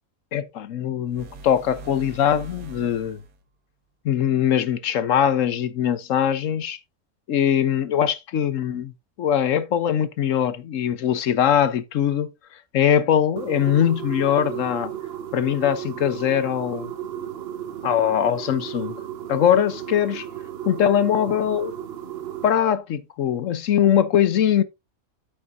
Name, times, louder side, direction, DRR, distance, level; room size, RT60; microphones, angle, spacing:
voice 1, 0.3-3.2 4.0-6.8 7.3-8.9 9.2-12.3 12.7-14.9 15.3-16.9 17.8-19.0 19.3-20.3 20.7-21.7 22.4-24.6, left 9 dB, 65° left, 1.1 m, -21 dB
sound 1, 1.0-3.4, right 3 dB, 80° right, 1.5 m, -42 dB
sound 2, 13.4-22.5, right 10 dB, 55° right, 0.8 m, -34 dB
9.4 x 8.7 x 2.5 m
omnidirectional pair, 1.5 m